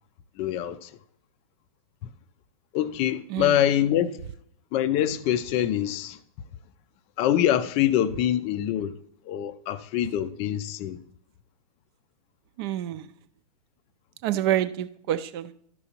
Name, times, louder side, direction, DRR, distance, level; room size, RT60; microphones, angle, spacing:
voice 1, 0.4-0.9 2.7-4.1 4.7-6.2 7.2-8.9 9.3-11.0, left 11 dB, 30° left, 0.4 m, -25 dB
voice 2, 3.3-3.6 12.6-13.1 14.2-15.5, right 12 dB, 40° right, 0.5 m, -27 dB
12.0 x 5.9 x 2.9 m
hypercardioid pair, 115°, 19 cm